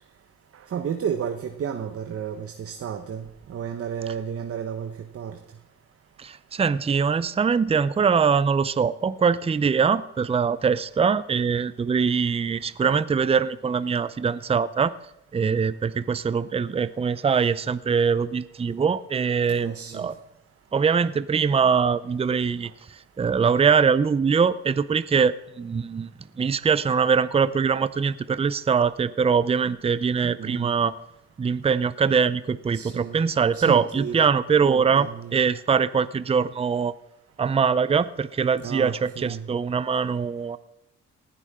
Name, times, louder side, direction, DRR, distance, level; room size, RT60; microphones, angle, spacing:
voice 1, 0.5-5.4 19.5-20.1 30.2-30.8 32.7-33.3 33.5-34.2 34.6-35.5 38.6-39.5, right 8 dB, 50° right, 7 dB, 1.1 m, -32 dB
voice 2, 6.2-14.9 15.3-20.1 20.7-26.1 26.4-30.9 31.4-36.9 37.4-40.6, right 6 dB, 20° right, 16 dB, 0.5 m, -23 dB
19.0 x 11.0 x 3.7 m, 0.90 s
cardioid pair, 90°, 30 cm